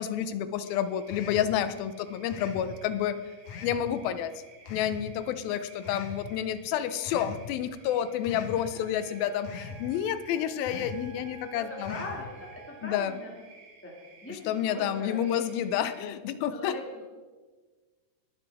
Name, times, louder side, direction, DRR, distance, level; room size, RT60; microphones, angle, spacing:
voice 1, 0.0-3.2 3.6-4.3 4.7-12.0 12.8-13.2 14.3-16.8, left 10 dB, 85° left, 12 dB, 2.5 m, -30 dB
sound 1, 0.6-16.1, right 4 dB, 60° right, 2.9 m, -56 dB
sound 2, 1.1-1.5 2.3-2.7 3.5-3.8 4.7-5.0 5.8-6.2 7.0-7.4 8.2-8.6 9.4-9.8 10.6-11.0 11.8-12.2, left 6 dB, 65° left, 1.9 m, -41 dB
Wind instrument woodwind instrument, 8.7-13.3, right 8 dB, 85° right, 2.7 m, -52 dB
voice 2, 11.5-13.3 13.8-13.9 14.2-15.4 16.5-16.8, left 2 dB, 10° left, -3 dB, 0.6 m, -41 dB
21.5 x 7.9 x 3.5 m, 1.4 s
omnidirectional pair, 4.2 m